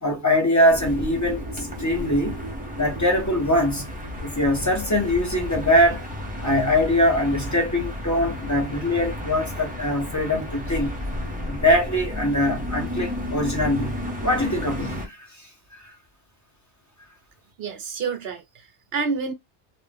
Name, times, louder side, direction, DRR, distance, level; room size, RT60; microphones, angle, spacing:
voice 1, 0.0-2.4 2.8-3.8 4.2-6.0 6.4-11.0 11.5-14.0 14.2-15.5 15.8-15.9, left 1 dB, 15° left, 1.0 m, -22 dB
sound 1, 0.7-15.1, left 1 dB, 10° right, 0.8 m, -32 dB
voice 2, 17.6-19.3, right 5 dB, 65° right, 1.0 m, -29 dB
2.6 x 2.3 x 3.4 m
omnidirectional pair, 1.1 m